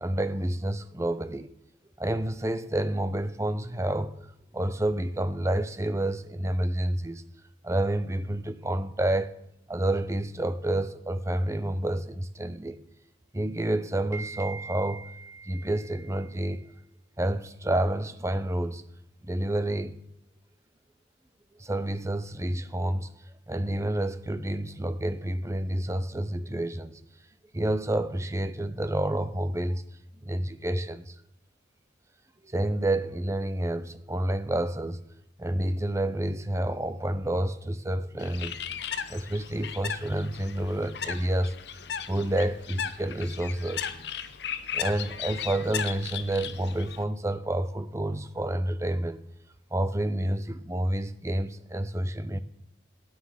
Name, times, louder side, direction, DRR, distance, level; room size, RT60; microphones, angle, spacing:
voice 1, 0.0-1.5 2.0-4.3 4.5-7.2 7.6-9.3 9.7-12.8 13.3-16.6 17.2-18.8 19.2-20.0 21.6-23.1 23.5-27.0 27.5-29.8 30.2-31.1 32.5-35.0 35.4-38.6 39.1-41.6 42.1-43.9 44.7-49.2 49.7-52.4, right 1 dB, 15° right, 0.6 m, -29 dB
Bird, 38.2-47.0, left 8 dB, 60° left, 0.8 m, -36 dB
13.0 x 9.6 x 6.6 m
head